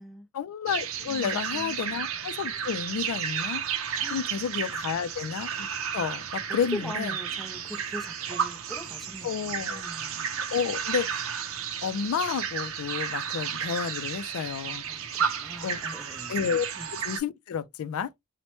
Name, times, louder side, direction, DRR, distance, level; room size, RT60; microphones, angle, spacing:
voice 1, 0.3-3.6 4.1-5.7 5.9-7.1 9.2-9.8 10.5-11.3 11.8-14.8 15.6-15.8 16.3-16.7 16.9-18.1, left 7 dB, 75° left, 0.3 m, -31 dB
sound 1, 0.7-17.2, right 7 dB, 65° right, 0.5 m, -33 dB
voice 2, 1.1-1.9 4.0-4.4 4.7-4.8 6.7-10.3 14.9-16.4 16.8-17.0, left 1 dB, ahead, 0.4 m, -41 dB
2.9 x 2.1 x 2.9 m
head